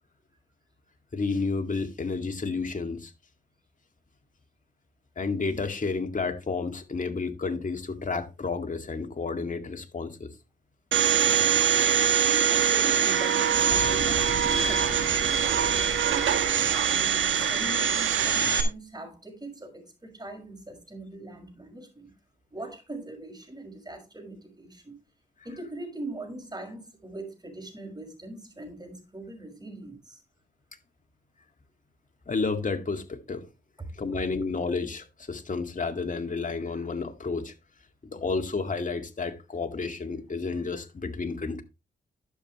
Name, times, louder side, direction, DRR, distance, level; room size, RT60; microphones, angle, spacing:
voice 1, 1.1-3.1 5.2-10.3 32.3-33.5 34.0-37.5 38.0-41.6, left 4 dB, 40° left, 2.1 m, -31 dB
Domestic sounds home sounds, 10.9-18.6, right 8 dB, 80° right, 1.6 m, -23 dB
voice 2, 12.3-22.1 22.5-25.0 25.4-30.2 33.8-34.2, right 2 dB, 20° right, 6.0 m, -41 dB
Fire, 13.4-18.6, left 4 dB, 60° left, 2.2 m, -40 dB
12.0 x 7.4 x 3.1 m
supercardioid pair, 50°, 20 cm